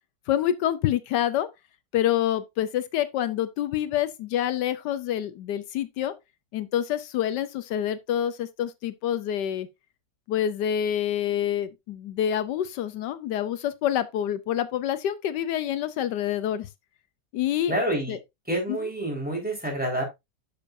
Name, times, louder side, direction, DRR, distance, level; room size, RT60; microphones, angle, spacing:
voice 1, 0.3-1.5 1.9-6.1 6.5-9.7 10.3-16.7 17.3-17.8 18.1-18.2 18.7-18.9, left 11 dB, 80° left, 1.3 m, -27 dB
voice 2, 17.7-18.2 18.5-20.0, right 1 dB, 5° right, 4.2 m, -28 dB
9.7 x 6.9 x 2.6 m
omnidirectional pair, 1.8 m